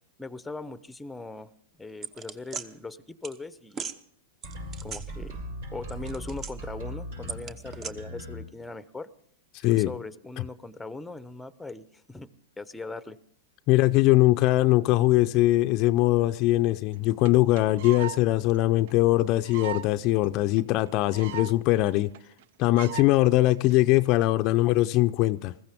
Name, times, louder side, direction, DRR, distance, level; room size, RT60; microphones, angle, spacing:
voice 1, 0.2-1.5 1.8-3.8 4.8-5.4 5.7-9.1 9.7-12.3 12.6-13.2, left 3 dB, 5° left, 0.7 m, -40 dB
sound 1, 2.0-2.7 3.2-3.4 3.7-4.0 4.4-5.5 5.8-6.8 7.3-7.9, right 6 dB, 30° right, 1.0 m, -38 dB
sound 2, 4.4-8.4, left 1 dB, 75° right, 7.5 m, -39 dB
voice 2, 9.6-9.9 13.7-22.1 22.6-25.5, left 17 dB, 45° left, 0.5 m, -21 dB
sound 3, 16.9-17.0 17.2-17.3 17.6-18.2 18.5-18.6 18.9-19.0 19.4-19.9 20.2-20.3 20.6-20.7 20.9-21.6 21.9-22.0 22.1-22.4 22.8-23.1 23.7-24.0, right 11 dB, 60° right, 0.5 m, -37 dB
20.5 x 15.0 x 3.6 m
hypercardioid pair, 110°, 0 cm